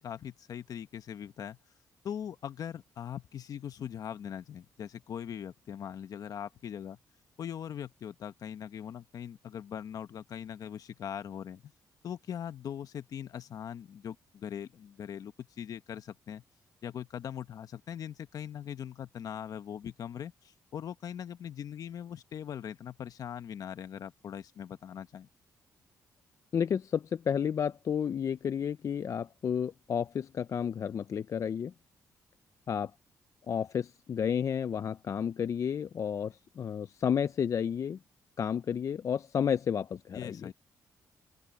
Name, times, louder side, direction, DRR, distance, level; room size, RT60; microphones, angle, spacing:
voice 1, 0.0-1.6 2.0-7.0 7.4-11.7 12.0-16.4 16.8-25.3 40.1-40.5, left 9 dB, 65° left, 1.3 m, -41 dB
voice 2, 26.5-31.7 32.7-32.9 33.5-38.0 38.4-40.5, left 8 dB, 50° left, 0.5 m, -31 dB
open air
cardioid pair, 90°, 7 cm